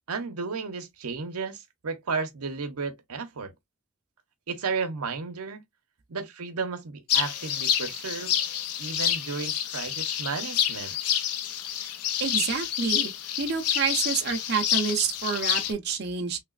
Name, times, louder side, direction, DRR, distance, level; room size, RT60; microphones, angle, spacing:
voice 1, 0.1-3.5 4.5-5.6 6.1-8.4 8.8-11.0, right 4 dB, 85° right, 0.7 m, -33 dB
sound 1, 7.1-15.7, left 10 dB, 90° left, 0.5 m, -28 dB
voice 2, 12.2-13.1 13.4-16.4, right 6 dB, 50° right, 0.5 m, -28 dB
3.3 x 2.9 x 2.4 m
head